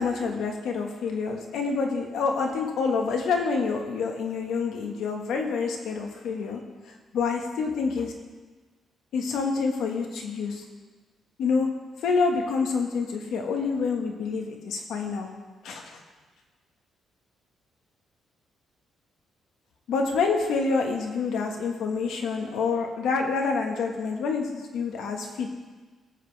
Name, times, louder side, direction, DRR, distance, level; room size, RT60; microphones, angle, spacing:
voice 1, 0.0-6.6 7.1-8.1 9.1-10.6 11.4-11.7 12.0-15.3 15.6-16.0 19.9-25.5, left 4 dB, 80° left, 2 dB, 1.6 m, -27 dB
18.0 x 7.6 x 3.5 m, 1.3 s
cardioid pair, 135°, 0 cm